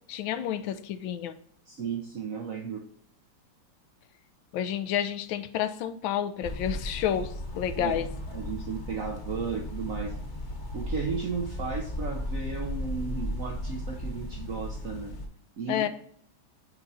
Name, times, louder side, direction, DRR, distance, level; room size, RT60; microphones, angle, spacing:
voice 1, 0.1-1.3 4.5-8.0 15.7-15.9, left 10 dB, 75° left, 11 dB, 1.3 m, -30 dB
voice 2, 1.7-2.8 7.8-8.0 8.3-10.2 10.7-15.2 15.6-15.9, right 5 dB, 65° right, 3 dB, 0.8 m, -34 dB
sound 1, 6.4-15.3, left 1 dB, 40° left, 1.3 m, -35 dB
9.5 x 4.3 x 2.6 m, 0.65 s
omnidirectional pair, 2.2 m